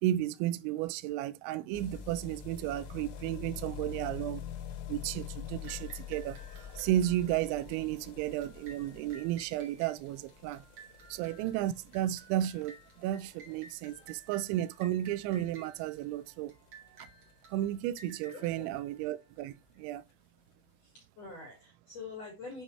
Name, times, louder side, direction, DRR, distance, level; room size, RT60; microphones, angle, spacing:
voice 1, 0.0-4.5 4.9-10.6 11.1-16.5 17.5-20.0, right 13 dB, 85° right, 2.7 m, -33 dB
sound 1, 1.7-18.5 18.8-18.9 19.1-19.2 19.4-19.5 19.7-19.8 20.5-20.6, left 8 dB, 85° left, 3.7 m, -47 dB
sound 2, 5.6-19.8, right 3 dB, 50° right, 1.9 m, -56 dB
voice 2, 18.3-18.7 20.8-22.6, left 4 dB, 50° left, 2.2 m, -45 dB
8.2 x 5.0 x 3.2 m
omnidirectional pair, 5.6 m